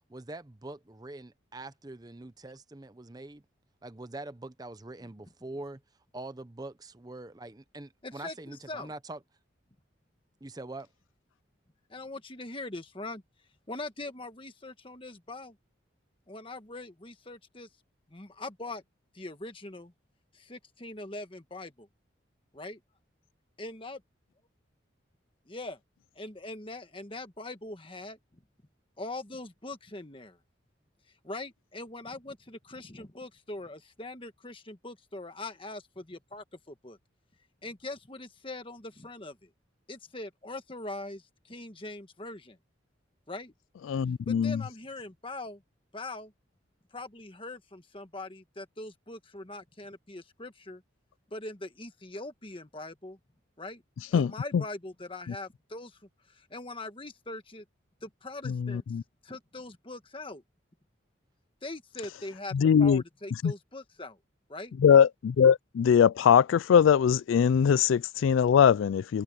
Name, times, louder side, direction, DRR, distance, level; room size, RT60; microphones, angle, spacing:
voice 1, 0.0-3.4 3.8-5.8 6.1-9.2 10.4-10.9, right 2 dB, 20° right, 0.7 m, -43 dB
voice 2, 8.0-8.9 11.9-13.2 13.7-15.6 16.3-17.7 18.1-18.8 19.1-19.9 20.3-21.9 22.5-22.8 23.6-24.0 25.4-25.8 26.1-28.4 29.0-30.4 31.2-37.0 37.6-39.5 39.9-42.6 43.3-43.5 44.3-45.6 45.9-46.3 46.9-50.8 51.3-53.2 53.6-53.8 54.1-57.6 58.0-58.8 59.2-60.4 61.6-64.2 64.5-64.7, left 2 dB, 25° left, 1.5 m, -42 dB
voice 3, 43.9-44.6 54.1-54.6 58.5-59.0 62.5-63.0 63.4-63.5 64.8-69.2, left 7 dB, 80° left, 0.3 m, -22 dB
head